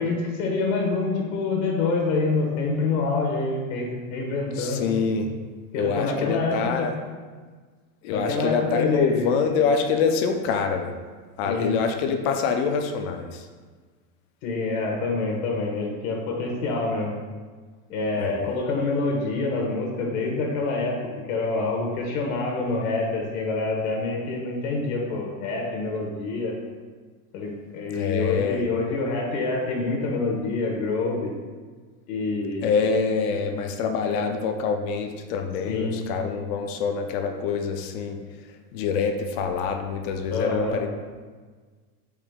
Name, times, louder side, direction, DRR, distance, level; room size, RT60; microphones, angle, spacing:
voice 1, 0.0-4.8 5.7-6.9 8.1-9.3 11.4-11.7 14.4-17.1 17.9-21.0 21.3-26.5 27.3-31.3 32.1-32.7 34.0-34.3 35.7-35.9 40.3-40.8, left 3 dB, 65° left, 0 dB, 1.1 m, -26 dB
voice 2, 4.6-5.3 5.8-6.9 8.0-10.9 11.4-13.5 18.1-18.4 27.9-28.6 32.6-38.2 38.7-40.9, left 5 dB, 45° left, 5 dB, 0.5 m, -25 dB
4.9 x 3.0 x 3.5 m, 1.5 s
supercardioid pair, 140°, 45 cm